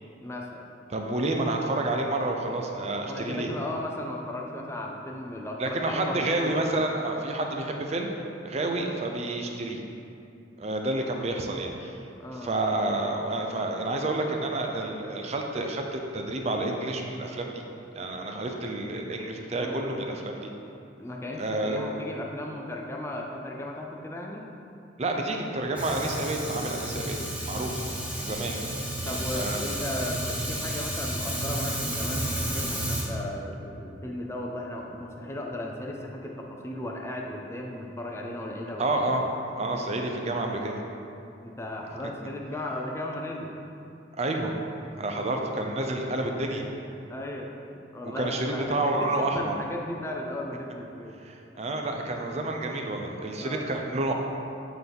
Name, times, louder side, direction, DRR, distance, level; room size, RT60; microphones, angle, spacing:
voice 1, 0.2-0.6 3.0-6.7 8.5-8.7 11.2-11.3 12.2-12.5 19.6-19.8 21.0-24.5 27.5-27.7 29.0-38.8 39.2-39.3 41.4-43.5 47.1-47.5 47.9-51.2 53.4-53.6, left 1 dB, 15° left, 0 dB, 0.5 m, -36 dB
voice 2, 0.9-3.5 5.6-8.1 8.4-9.8 10.6-12.0 12.4-17.5 18.0-20.5 21.4-21.9 25.0-27.2 27.4-27.8 28.1-28.6 29.0-29.6 38.8-39.3 39.6-40.8 44.2-44.5 45.0-46.7 48.0-49.5 51.2-54.1, right 2 dB, 35° right, 2 dB, 0.5 m, -29 dB
Fire, 25.8-33.0, right 1 dB, 5° right, 0.9 m, -32 dB
8.1 x 3.9 x 3.5 m, 2.7 s
head